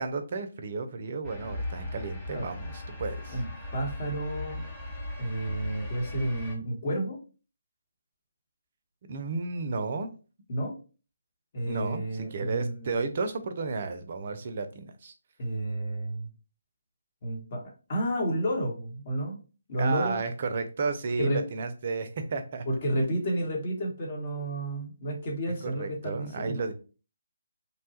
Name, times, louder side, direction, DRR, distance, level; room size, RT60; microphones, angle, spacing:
voice 1, 0.0-3.4 9.1-10.1 11.7-15.1 19.8-22.6 25.6-26.7, right 4 dB, 45° right, 8 dB, 0.5 m, -33 dB
sound 1, 1.2-6.5, left 2 dB, 15° left, 0.9 m, -38 dB
voice 2, 3.7-4.6 5.2-7.2 10.5-10.7 11.5-13.0 15.4-16.3 17.2-17.6 17.9-19.4 19.7-20.2 21.2-21.4 22.7-26.7, right 1 dB, 40° left, 0 dB, 1.1 m, -31 dB
2.9 x 2.2 x 2.8 m, 0.35 s
figure-of-eight pair, 150°, 0 cm